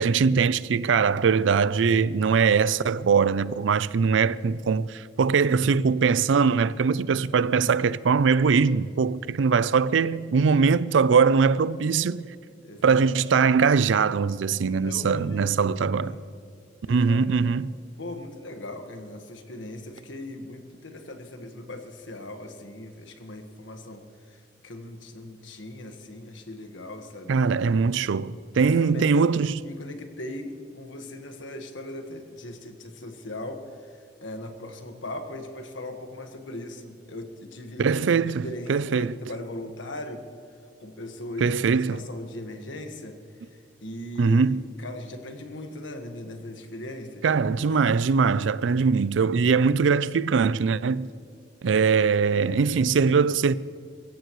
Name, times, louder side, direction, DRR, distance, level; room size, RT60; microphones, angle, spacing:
voice 1, 0.0-12.2 12.8-16.2 16.9-17.7 27.3-29.6 37.8-39.1 41.4-42.0 44.2-44.6 47.2-51.1 51.6-53.5, right 5 dB, 85° right, 0.4 m, -22 dB
voice 2, 12.6-13.1 14.7-16.3 16.9-17.2 18.0-27.5 28.5-29.3 29.6-33.9 34.2-40.2 40.8-43.2 43.5-47.3 47.7-47.9 52.0-52.5, left 1 dB, 90° left, 1.5 m, -39 dB
23.5 x 15.5 x 3.1 m
head